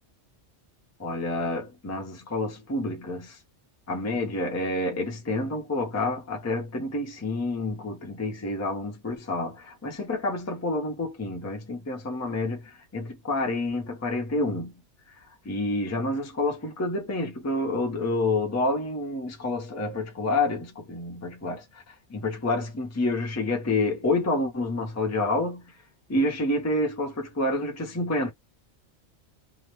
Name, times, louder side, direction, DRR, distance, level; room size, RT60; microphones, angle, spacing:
voice 1, 1.0-3.4 3.9-14.7 15.4-25.6 26.1-28.3, left 2 dB, 20° left, 0.5 m, -28 dB
2.8 x 2.0 x 3.1 m
omnidirectional pair, 1.2 m